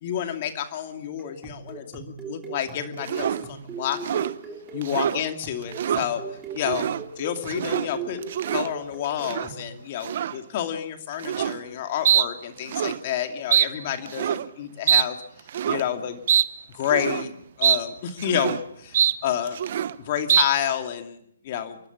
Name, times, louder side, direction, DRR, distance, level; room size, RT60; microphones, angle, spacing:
voice 1, 0.0-4.3 4.7-6.2 6.5-6.9 7.2-8.2 8.5-15.2 15.7-16.2 16.7-19.6 20.0-21.8, left 10 dB, 40° left, 7 dB, 2.5 m, -29 dB
sound 1, 1.2-9.7, right 5 dB, 15° right, 3.3 m, -39 dB
sound 2, 3.0-3.4 3.9-4.3 4.8-5.2 5.6-6.1 6.6-7.0 7.4-7.9 8.2-8.7 9.2-9.5 10.0-10.4 11.2-11.6 12.0-12.3 12.6-13.0 13.5-13.7 14.1-14.5 14.9-15.1 15.5-15.8 16.3-16.5 16.8-17.3 17.6-17.8 18.1-18.6 18.9-19.2 19.5-19.9 20.3-20.4, right 10 dB, 50° right, 0.8 m, -23 dB
30.0 x 12.0 x 7.2 m, 0.72 s
hypercardioid pair, 145°, 0 cm